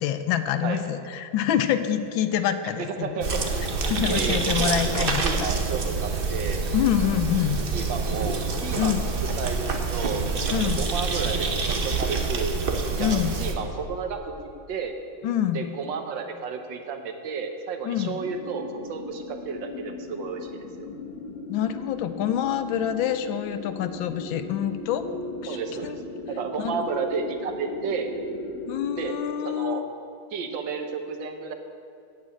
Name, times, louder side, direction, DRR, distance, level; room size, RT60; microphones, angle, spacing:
voice 1, 0.0-3.2 3.9-5.5 6.7-7.6 8.8-9.1 10.5-10.8 13.0-13.4 15.2-15.7 17.8-18.2 21.5-25.1 25.4-26.0 26.6-26.8 28.7-29.8, left 10 dB, 80° left, 10 dB, 1.4 m, -26 dB
voice 2, 2.9-3.7 4.0-6.6 7.7-9.0 9.4-10.2 10.6-12.6 13.0-14.3 14.7-15.0 15.5-20.7 25.5-25.9 26.4-28.1 29.0-29.2 29.4-29.8 30.3-31.5, right 5 dB, 70° right, 6 dB, 1.5 m, -32 dB
sound 1, 3.2-13.5, right 4 dB, 45° right, 0.7 m, -27 dB
sound 2, 18.2-29.1, left 3 dB, 45° left, 0.9 m, -37 dB
8.8 x 8.6 x 8.3 m, 2.4 s
omnidirectional pair, 2.2 m